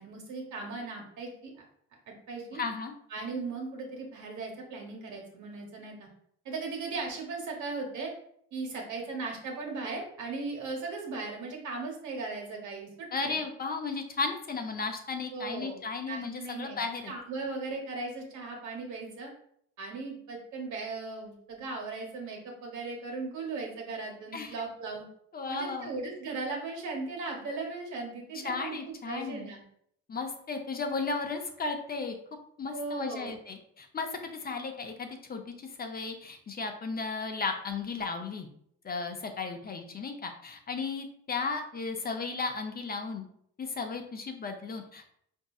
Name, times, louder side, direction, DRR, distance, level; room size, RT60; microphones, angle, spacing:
voice 1, 0.0-1.6 2.1-2.6 3.1-6.1 6.4-8.1 8.5-13.4 15.3-15.8 16.1-16.8 17.1-19.3 19.8-25.1 25.5-29.6 32.7-33.4, right 3 dB, 70° right, 0 dB, 1.2 m, -37 dB
voice 2, 2.5-2.9 13.1-17.1 24.3-24.5 25.3-25.9 28.4-29.5 30.1-32.2 32.6-38.5 38.8-43.2 43.6-45.1, left 4 dB, 30° left, 4 dB, 0.6 m, -35 dB
5.0 x 2.7 x 2.3 m, 0.68 s
cardioid pair, 90°, 30 cm